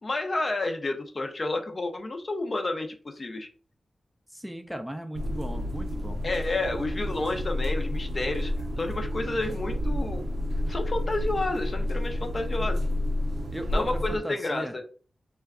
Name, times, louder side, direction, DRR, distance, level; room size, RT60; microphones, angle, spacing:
voice 1, 0.0-3.5 6.2-8.5 8.8-10.2 10.7-12.8 13.7-14.8, left 2 dB, 50° left, 5 dB, 0.6 m, -30 dB
voice 2, 4.3-6.2 13.5-14.7, equal, ahead, 6 dB, 0.5 m, -37 dB
sound 1, 5.1-14.2, left 1 dB, 80° right, 0.5 m, -30 dB
2.2 x 2.2 x 3.5 m, 0.39 s
cardioid pair, 50°, 0 cm